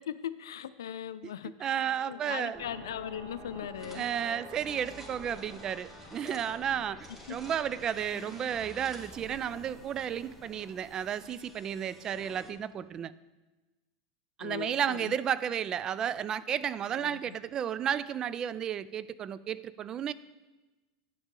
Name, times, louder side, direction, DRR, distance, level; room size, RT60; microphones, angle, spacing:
voice 1, 0.1-1.7 2.1-4.1 7.3-7.4 8.1-8.2 14.4-15.1 17.0-17.4, left 10 dB, 85° left, 0.4 m, -39 dB
voice 2, 1.2-2.6 3.8-13.1 14.4-20.1, right 9 dB, 35° right, 0.3 m, -33 dB
Brass instrument, 1.7-6.1, right 3 dB, 70° right, 1.3 m, -52 dB
sound 1, 2.5-12.5, left 1 dB, ahead, 1.4 m, -50 dB
sound 2, 3.8-4.1 4.4-9.2, equal, 15° right, 2.4 m, -53 dB
9.9 x 7.1 x 3.8 m
hypercardioid pair, 105°, 2 cm